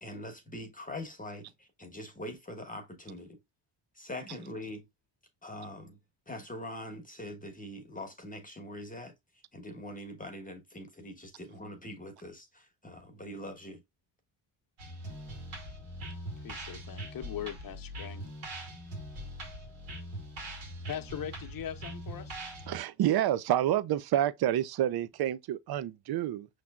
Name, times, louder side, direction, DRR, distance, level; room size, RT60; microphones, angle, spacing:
voice 1, 0.0-3.4 3.9-4.9 5.4-6.0 6.3-9.1 9.5-13.8, left 1 dB, 15° left, 1.1 m, -43 dB
sound 1, 14.8-22.8, right 1 dB, 80° right, 2.1 m, -42 dB
voice 2, 16.4-18.2 20.9-22.4, left 9 dB, 45° left, 0.9 m, -40 dB
voice 3, 22.7-26.5, right 12 dB, 50° right, 0.5 m, -28 dB
5.8 x 3.2 x 2.3 m
cardioid pair, 85°, 48 cm